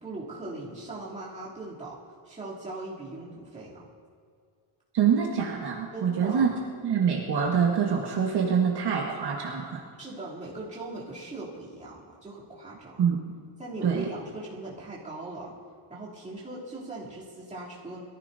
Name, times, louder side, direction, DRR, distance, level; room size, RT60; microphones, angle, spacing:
voice 1, 0.0-2.0 2.2-3.8 5.9-6.6 10.0-13.0 13.6-15.5 15.9-18.0, right 2 dB, 15° right, -8 dB, 3.1 m, -39 dB
voice 2, 4.9-6.5 6.8-9.8 13.0-13.2 13.8-14.0, right 7 dB, 55° right, -2 dB, 1.5 m, -25 dB
22.5 x 14.5 x 2.7 m, 2.2 s
cardioid pair, 180°, 47 cm